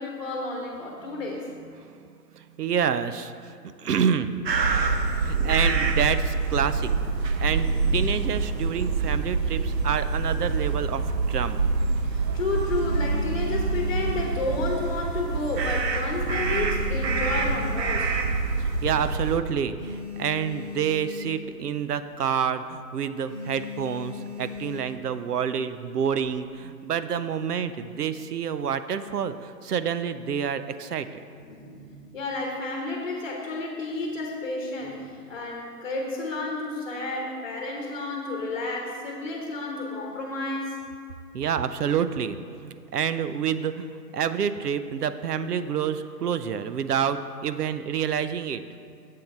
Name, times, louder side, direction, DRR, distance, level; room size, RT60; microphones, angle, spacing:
voice 1, 0.0-1.5 12.0-18.2 20.9-21.0 24.8-25.1 31.3-40.8, left 2 dB, 35° left, 0 dB, 1.1 m, -31 dB
voice 2, 2.3-3.3 3.8-4.3 5.2-6.9 7.4-11.7 18.6-31.2 41.3-48.6, right 8 dB, 70° right, 12 dB, 0.7 m, -28 dB
sound 1, 4.5-19.4, right 4 dB, 85° right, 1.0 m, -26 dB
sound 2, 12.8-15.1 15.4-15.7 16.0-18.3 18.7-18.8 19.0-19.1 19.5-21.7 22.0-22.2 22.5-22.8 23.3-25.1 25.8-26.4, left 6 dB, 10° left, 1.1 m, -38 dB
7.7 x 7.6 x 5.3 m, 2.4 s
hypercardioid pair, 160°, 49 cm